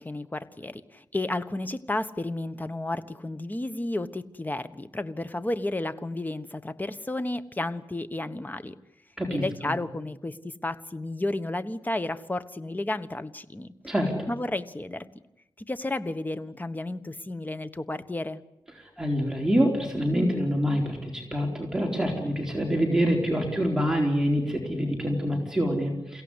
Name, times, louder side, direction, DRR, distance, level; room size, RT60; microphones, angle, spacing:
voice 1, 0.0-8.7 9.3-13.7 14.3-15.0 15.7-18.4, left 2 dB, 20° left, 12 dB, 1.3 m, -32 dB
voice 2, 9.2-9.7 13.8-14.3 19.0-26.2, equal, 5° right, 1 dB, 4.3 m, -26 dB
29.0 x 16.5 x 9.9 m, 0.90 s
wide cardioid pair, 100°, 8 cm